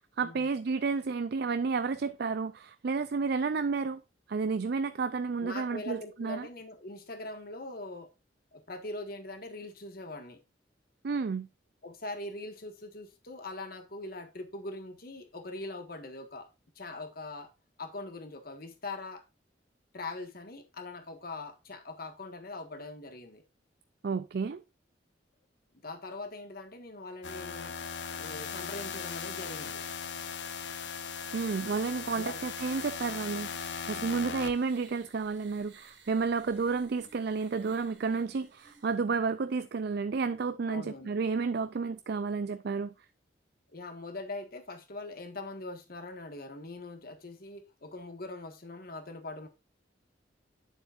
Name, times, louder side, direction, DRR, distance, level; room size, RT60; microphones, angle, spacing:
voice 1, 0.2-4.0 4.3-6.5 11.0-11.5 24.0-24.6 31.3-42.9, right 4 dB, 60° right, 0.4 m, -31 dB
voice 2, 5.4-8.1 8.5-10.4 11.8-16.5 16.7-17.5 17.8-19.2 19.9-23.4 25.8-27.8 28.2-29.8 32.1-32.4 40.7-41.1 43.7-49.5, left 2 dB, 55° left, 1.6 m, -42 dB
sound 1, 27.2-34.8, left 6 dB, 70° left, 0.8 m, -38 dB
sound 2, 31.7-39.0, right 5 dB, 85° right, 2.8 m, -58 dB
9.4 x 7.2 x 2.5 m
head